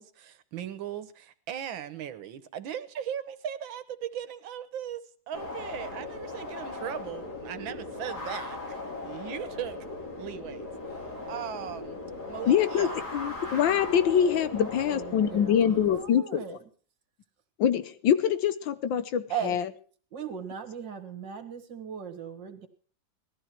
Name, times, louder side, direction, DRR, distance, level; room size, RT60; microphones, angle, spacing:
voice 1, 0.0-9.8 10.2-12.0 12.3-13.1, right 9 dB, 90° right, 12 dB, 1.8 m, -38 dB
sound 1, 5.3-16.0, left 2 dB, 55° left, 5.1 m, -38 dB
voice 2, 12.5-16.6 17.6-19.7, left 9 dB, 80° left, 12 dB, 1.6 m, -25 dB
voice 3, 14.6-15.6 15.9-16.6 19.3-19.6 20.1-22.7, right 8 dB, 70° right, 6 dB, 2.3 m, -37 dB
18.5 x 13.5 x 4.5 m, 0.43 s
omnidirectional pair, 2.1 m